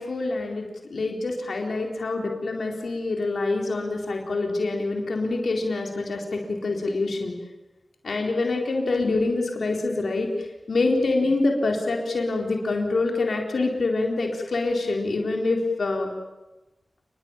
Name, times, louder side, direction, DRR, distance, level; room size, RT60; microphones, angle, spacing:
voice 1, 0.0-7.3 8.0-10.3 10.7-16.1, left 3 dB, 75° left, 1 dB, 4.1 m, -26 dB
29.0 x 21.5 x 9.0 m, 1.0 s
wide cardioid pair, 80°, 0 cm